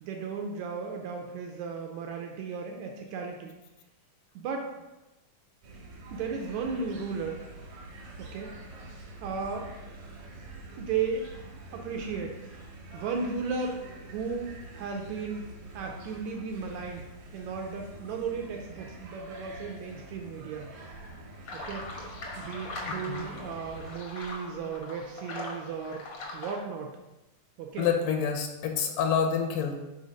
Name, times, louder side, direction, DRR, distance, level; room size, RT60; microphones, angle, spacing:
voice 1, 0.0-3.5 4.3-4.7 6.1-7.4 8.2-8.5 9.2-9.7 10.8-11.3 11.7-12.4 12.9-17.1 17.3-20.7 21.5-21.8 22.3-26.1 26.3-26.9 27.6-27.9, right 5 dB, 80° right, 2 dB, 1.7 m, -35 dB
sound 1, 5.6-24.0, right 2 dB, 55° right, 1.8 m, -46 dB
sound 2, 21.5-26.6, left 2 dB, 65° left, 1.1 m, -41 dB
voice 2, 22.9-23.6 27.8-29.8, left 7 dB, 80° left, 3 dB, 2.3 m, -28 dB
5.6 x 3.9 x 5.1 m, 1.0 s
omnidirectional pair, 3.7 m